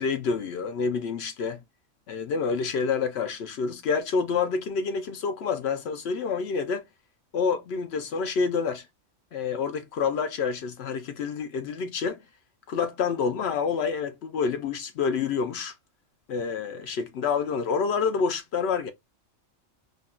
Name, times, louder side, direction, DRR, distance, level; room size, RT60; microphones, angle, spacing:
voice 1, 0.0-1.6 2.1-6.9 7.3-8.9 9.3-12.2 12.7-15.7 16.3-18.9, left 5 dB, 65° left, 0.7 m, -28 dB
3.6 x 2.2 x 2.2 m
omnidirectional pair, 1.3 m